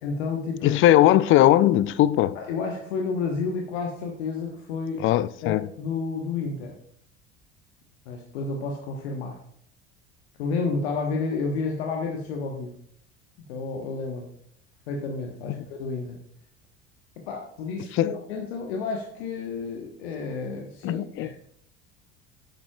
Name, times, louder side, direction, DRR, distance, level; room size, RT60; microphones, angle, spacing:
voice 1, 0.0-0.7 2.3-5.0 5.4-6.7 8.1-9.4 10.4-12.7 13.5-14.3 14.9-16.2 17.3-21.4, left 4 dB, 70° left, 1.1 m, -31 dB
voice 2, 0.6-2.4 5.0-5.7 15.5-15.6 17.9-18.2 20.8-21.3, left 13 dB, 40° left, 0.4 m, -19 dB
9.4 x 7.7 x 2.3 m
hypercardioid pair, 65°, 33 cm